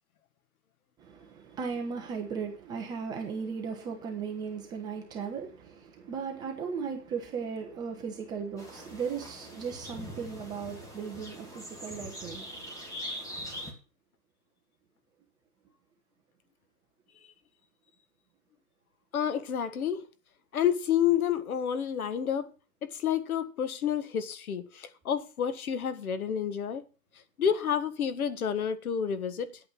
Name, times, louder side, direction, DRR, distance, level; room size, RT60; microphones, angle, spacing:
voice 1, 1.0-12.5, right 6 dB, 10° right, 0.7 m, -37 dB
sound 1, 8.6-13.7, equal, 5° left, 2.1 m, -42 dB
voice 2, 19.1-20.0 20.5-22.5 22.8-26.8 27.4-29.6, left 8 dB, 60° left, 1.5 m, -29 dB
9.7 x 8.6 x 6.1 m
hypercardioid pair, 140°, 48 cm